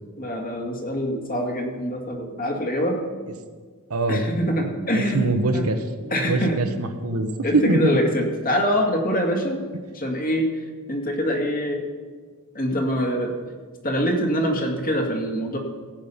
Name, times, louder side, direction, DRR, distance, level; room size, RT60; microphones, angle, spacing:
voice 1, 0.2-3.0 4.1-5.7 6.1-6.6 7.4-9.6 9.9-10.5 10.9-11.8 12.5-13.4 13.8-15.6, equal, 40° left, 1 dB, 2.2 m, -24 dB
voice 2, 3.9-4.2 4.9-7.9, right 2 dB, 70° right, 7 dB, 1.1 m, -23 dB
16.0 x 8.6 x 5.7 m, 1.5 s
head